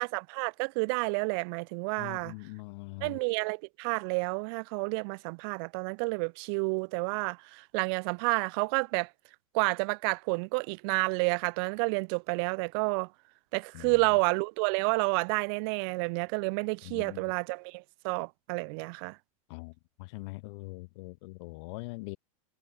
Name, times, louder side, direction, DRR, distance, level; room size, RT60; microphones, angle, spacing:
voice 1, 0.0-2.3 3.0-9.1 9.5-13.1 13.5-19.2, right 34 dB, 45° right, 0.4 m, -30 dB
voice 2, 2.0-3.2 13.7-14.0 16.8-17.2 19.5-22.2, left 27 dB, 55° left, 4.2 m, -42 dB
supercardioid pair, 145°, 18 cm